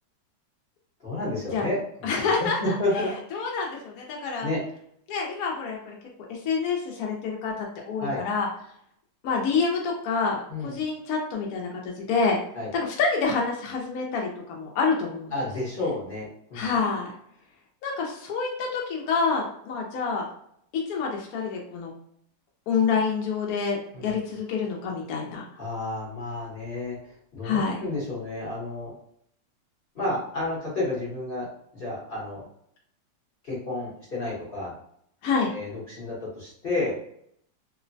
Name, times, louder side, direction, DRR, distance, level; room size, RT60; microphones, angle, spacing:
voice 1, 1.0-1.8 2.2-3.1 4.4-4.6 8.0-8.2 10.5-10.7 12.5-12.7 15.3-16.6 23.9-24.1 25.6-27.0 27.3-28.9 29.9-31.5 31.7-32.5 33.4-34.7 35.5-36.9, left 2 dB, 45° left, -7 dB, 0.8 m, -30 dB
voice 2, 2.0-4.5 5.1-6.0 6.3-7.5 7.9-8.5 9.2-12.4 12.7-15.3 16.5-17.1 17.8-20.2 20.7-21.9 22.7-25.5 27.4-27.8 35.2-35.5, left 5 dB, 70° left, -1 dB, 0.8 m, -27 dB
3.0 x 2.0 x 2.5 m, 0.68 s
omnidirectional pair, 2.0 m